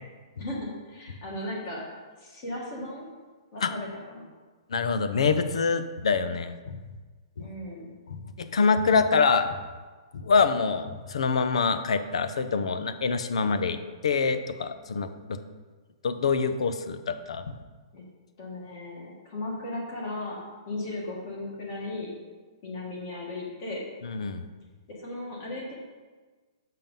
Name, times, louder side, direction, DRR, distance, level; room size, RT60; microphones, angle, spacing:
voice 1, 0.4-1.8 2.2-3.1 3.5-4.3 7.4-7.9 17.9-18.0 18.4-20.4 20.7-22.1 22.6-23.8 24.9-25.7, left 2 dB, 30° left, -2 dB, 1.6 m, -36 dB
voice 2, 4.7-6.8 7.4-7.5 8.1-9.5 10.1-13.8 14.0-15.4 16.0-17.4 24.0-24.4, left 5 dB, 80° left, 10 dB, 0.8 m, -25 dB
7.5 x 6.0 x 5.3 m, 1.3 s
hypercardioid pair, 180°, 3 cm